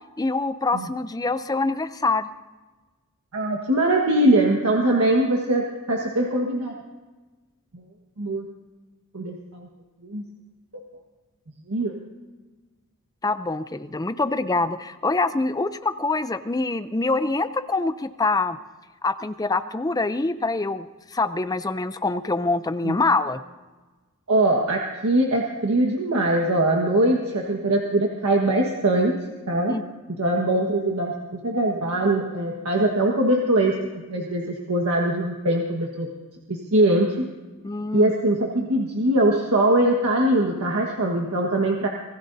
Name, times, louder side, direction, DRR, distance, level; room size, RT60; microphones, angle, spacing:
voice 1, 0.2-2.3 13.2-18.6 19.0-23.4 29.7-29.8 37.6-38.1, left 3 dB, 15° left, 12 dB, 0.5 m, -25 dB
voice 2, 3.3-5.6 5.9-6.7 7.7-7.8 8.2-8.5 9.1-9.7 10.0-10.2 11.7-11.9 22.8-23.0 24.3-29.1 29.5-29.7 30.2-31.1 31.4-33.7 34.1-36.1 36.5-37.1 37.9-41.9, right 1 dB, 85° right, 0 dB, 1.5 m, -22 dB
26.0 x 17.0 x 2.7 m, 1.2 s
head